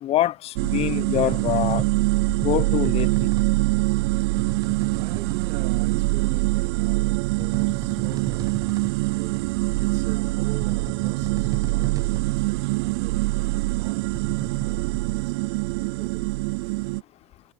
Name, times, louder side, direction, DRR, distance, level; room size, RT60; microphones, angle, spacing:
voice 1, 0.0-1.8 2.3-3.1, left 13 dB, 45° left, 0.9 m, -25 dB
sound 1, 0.6-17.0, right 24 dB, 70° right, 0.4 m, -24 dB
sound 2, 1.1-15.2, right 6 dB, 25° right, 1.1 m, -38 dB
voice 2, 4.0-16.7, right 15 dB, 55° right, 3.1 m, -43 dB
hypercardioid pair, 85°, 14 cm